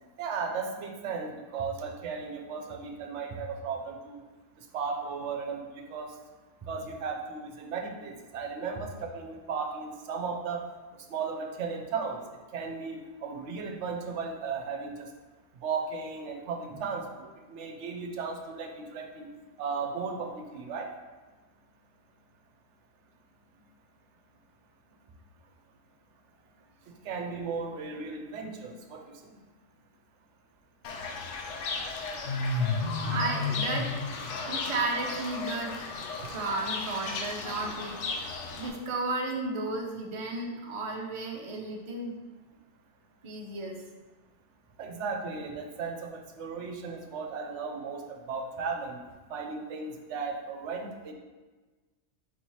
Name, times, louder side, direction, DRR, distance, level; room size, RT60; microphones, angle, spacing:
voice 1, 0.2-4.2 4.7-6.1 6.7-10.6 11.1-12.2 12.5-14.9 15.6-19.3 19.6-20.9 27.0-29.1 36.2-36.3 44.8-49.0 49.3-51.1, right 5 dB, 75° right, 3 dB, 0.9 m, -35 dB
Fowl / Bird, 30.8-38.7, left 3 dB, 75° left, 0.9 m, -33 dB
voice 2, 33.0-35.8 36.3-38.3 38.6-42.2 43.2-43.8, right 2 dB, 40° right, 1 dB, 0.4 m, -34 dB
4.0 x 2.8 x 4.5 m, 1.3 s
omnidirectional pair, 1.3 m